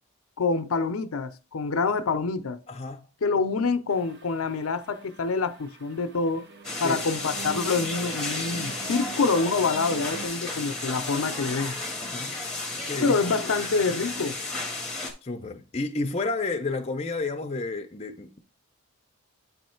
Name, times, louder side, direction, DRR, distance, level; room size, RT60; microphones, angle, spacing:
voice 1, 0.4-2.6 3.2-6.5 6.8-11.8 13.0-14.4, left 4 dB, 75° left, 0.5 m, -26 dB
voice 2, 2.7-3.1 6.8-7.0 12.0-12.3 12.7-13.2 15.2-18.4, left 3 dB, 30° left, 0.5 m, -31 dB
sound 1, 3.9-10.3, right 4 dB, 50° right, 0.6 m, -43 dB
sound 2, 6.6-15.1, left 2 dB, 5° left, 1.0 m, -33 dB
8.3 x 3.1 x 4.4 m
head